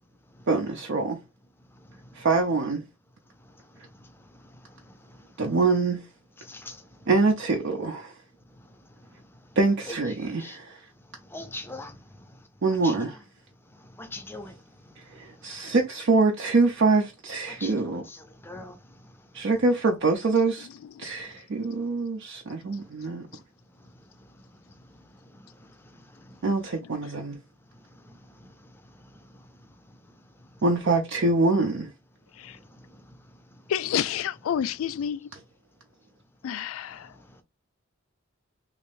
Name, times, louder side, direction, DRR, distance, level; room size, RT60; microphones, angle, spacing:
voice 1, 0.5-1.2 2.1-2.8 5.4-6.0 7.1-8.2 9.6-10.9 12.6-13.2 15.1-18.1 19.3-20.7 21.0-23.3 26.4-27.4 30.6-31.9, right 3 dB, 65° right, 0.5 m, -24 dB
voice 2, 11.3-11.9 12.8-13.0 14.0-14.5 17.5-18.2 18.4-18.7, left 2 dB, 10° left, 0.5 m, -40 dB
voice 3, 33.7-35.3 36.4-37.1, left 9 dB, 90° left, 0.3 m, -29 dB
3.2 x 2.5 x 3.4 m
head